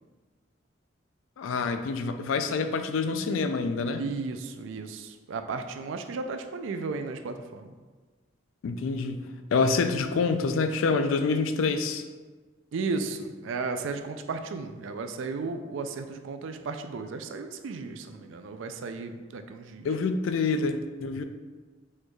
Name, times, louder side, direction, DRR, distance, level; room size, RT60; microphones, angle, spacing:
voice 1, 1.4-4.0 8.6-12.0 19.8-21.2, left 4 dB, 90° left, 9 dB, 0.4 m, -27 dB
voice 2, 4.0-7.7 12.7-19.9, right 4 dB, 70° right, 7 dB, 0.4 m, -34 dB
6.3 x 3.1 x 2.3 m, 1.4 s
head